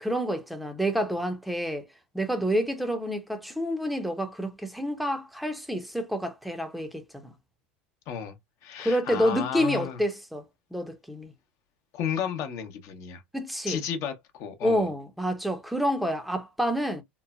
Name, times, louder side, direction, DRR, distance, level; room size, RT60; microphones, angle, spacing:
voice 1, 0.0-1.9 2.1-7.3 8.8-10.4 10.7-11.3 13.3-13.8 14.6-17.0, equal, ahead, 0.6 m, -28 dB
voice 2, 8.1-8.4 8.6-10.0 11.9-13.2 13.7-14.8, left 8 dB, 55° left, 0.8 m, -33 dB
3.1 x 2.1 x 2.3 m
hypercardioid pair, 95°, 6 cm